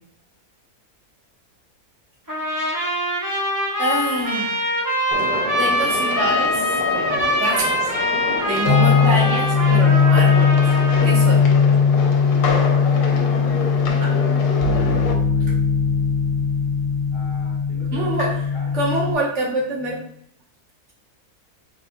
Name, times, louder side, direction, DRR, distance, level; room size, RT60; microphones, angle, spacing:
Trumpet, 2.3-11.4, left 1 dB, 20° right, 0.5 m, -23 dB
voice 1, 3.8-4.6 5.6-6.7 6.9-7.9 8.5-10.6 11.0-11.4 13.9-14.1 17.9-18.3 18.7-20.0, right 1 dB, 55° right, -4 dB, 1.1 m, -25 dB
sound 1, 5.1-15.1, left 4 dB, 90° left, 1.1 m, -28 dB
sound 2, 8.6-19.1, left 5 dB, 45° left, 1.1 m, -19 dB
voice 2, 13.0-13.5 15.3-15.6 17.1-18.7, left 1 dB, 20° left, -7 dB, 0.9 m, -41 dB
3.6 x 2.3 x 2.5 m, 0.69 s
omnidirectional pair, 1.6 m